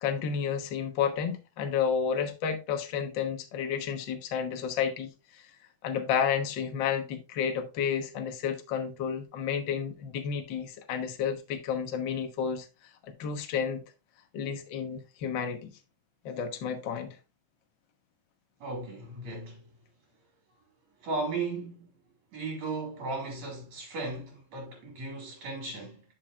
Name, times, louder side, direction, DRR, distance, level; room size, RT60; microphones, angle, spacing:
voice 1, 0.0-5.4 5.8-12.7 13.0-13.8 14.3-15.7 16.2-17.1, left 7 dB, 60° left, 1.2 m, -31 dB
voice 2, 18.6-19.7 21.0-21.9 22.3-26.0, right 3 dB, 55° right, 4.2 m, -36 dB
11.0 x 6.0 x 2.4 m
omnidirectional pair, 3.8 m